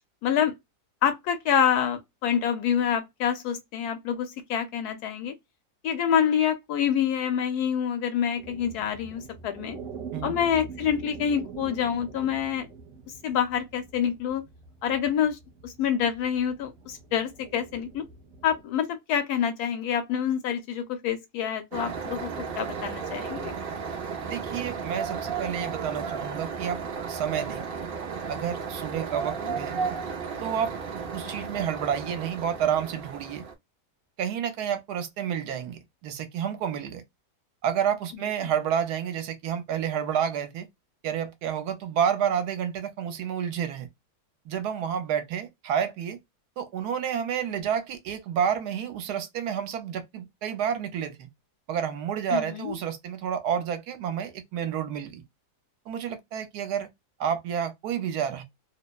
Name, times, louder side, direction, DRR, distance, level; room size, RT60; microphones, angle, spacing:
voice 1, 0.2-0.5 1.0-5.3 5.8-9.8 10.2-12.7 13.2-14.4 14.8-15.4 15.6-18.1 18.4-22.3 22.6-23.5 29.5-29.6 31.2-31.5 52.3-52.7, left 8 dB, 75° left, 1.1 m, -27 dB
sound 1, 8.4-18.6, right 5 dB, 45° right, 0.8 m, -44 dB
sound 2, 21.7-33.5, right 6 dB, 90° right, 0.5 m, -34 dB
voice 2, 24.2-26.8 27.1-27.6 28.3-29.7 30.4-30.7 31.1-33.5 34.2-37.0 37.6-40.7 41.0-43.9 44.5-46.2 46.6-51.3 51.7-55.2 55.9-56.9 57.2-58.4, right 8 dB, 75° right, 1.1 m, -29 dB
2.8 x 2.0 x 2.2 m
omnidirectional pair, 1.8 m